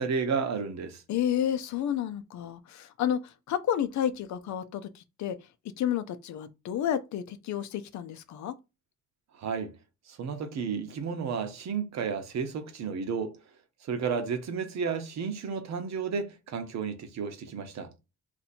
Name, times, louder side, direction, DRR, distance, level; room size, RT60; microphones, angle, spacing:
voice 1, 0.0-1.0 9.3-9.7 10.1-13.3 13.8-17.9, right 6 dB, 65° right, 0.9 m, -32 dB
voice 2, 1.1-5.4 5.8-8.6, left 10 dB, 70° left, 0.6 m, -31 dB
2.8 x 2.6 x 4.2 m
cardioid pair, 90°, 30 cm